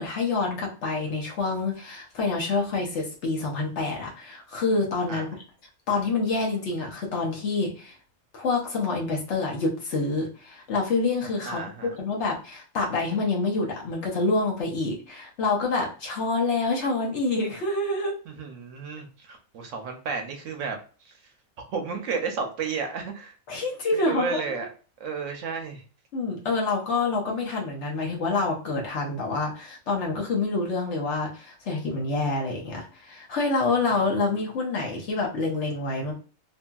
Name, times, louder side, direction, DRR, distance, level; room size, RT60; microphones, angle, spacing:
voice 1, 0.0-5.3 5.9-7.9 8.3-18.1 23.5-24.7 26.1-36.1, left 3 dB, 60° left, -1 dB, 1.0 m, -27 dB
voice 2, 11.4-11.9 18.3-21.1 21.6-23.3 23.9-24.7 25.0-25.8, right 5 dB, 70° right, 4 dB, 0.8 m, -32 dB
2.8 x 2.6 x 2.2 m, 0.38 s
omnidirectional pair, 1.4 m